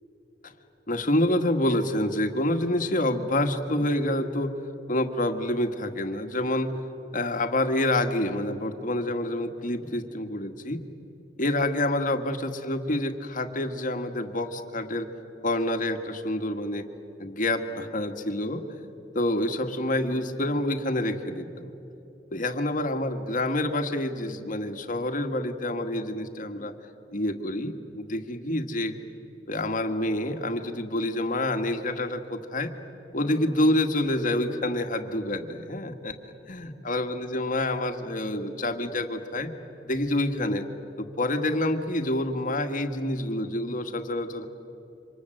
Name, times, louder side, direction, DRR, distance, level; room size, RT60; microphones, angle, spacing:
voice 1, 0.9-4.6 4.9-6.7 7.1-10.8 11.4-15.1 15.4-16.9 17.2-18.6 19.1-21.7 22.3-26.7 27.1-28.9 29.5-32.7 33.1-39.5 39.8-40.7 41.0-44.5, left 1 dB, 50° left, 7 dB, 1.8 m, -27 dB
29.0 x 26.0 x 7.8 m, 3.0 s
head